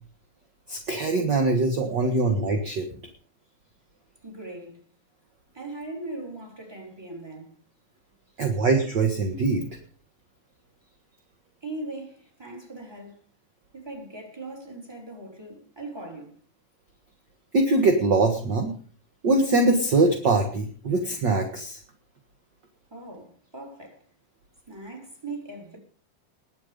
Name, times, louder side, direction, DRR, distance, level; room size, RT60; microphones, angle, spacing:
voice 1, 0.7-2.9 8.4-9.7 17.5-18.7 19.2-21.8, right 3 dB, 45° right, 1.5 m, -22 dB
voice 2, 4.2-4.8 5.5-7.5 11.6-13.2 13.7-16.3 22.9-24.0 24.7-25.8, right 2 dB, 5° right, 3.4 m, -39 dB
20.5 x 7.9 x 5.2 m
omnidirectional pair, 3.9 m